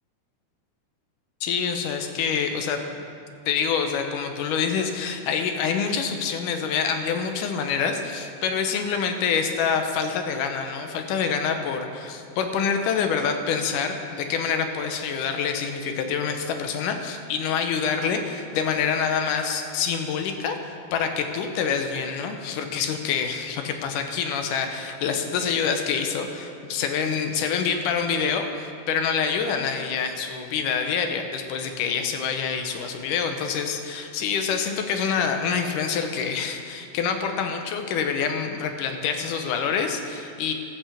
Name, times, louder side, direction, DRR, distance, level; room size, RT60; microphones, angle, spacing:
voice 1, 1.4-3.2 3.5-40.5, left 6 dB, 90° left, 5 dB, 2.4 m, -26 dB
14.0 x 5.9 x 7.1 m, 2.5 s
omnidirectional pair, 3.6 m